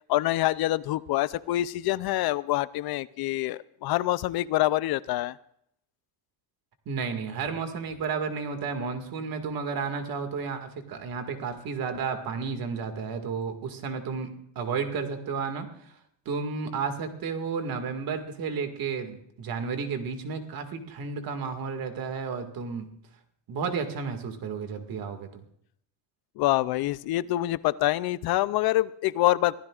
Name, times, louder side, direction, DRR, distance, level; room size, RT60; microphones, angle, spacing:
voice 1, 0.1-5.3 26.4-29.5, left 16 dB, 55° left, 17 dB, 0.5 m, -26 dB
voice 2, 6.9-14.3 14.6-15.9 16.3-22.9 23.5-25.4, right 5 dB, 50° right, 6 dB, 2.0 m, -32 dB
24.0 x 15.0 x 2.4 m, 0.70 s
cardioid pair, 150°, 44 cm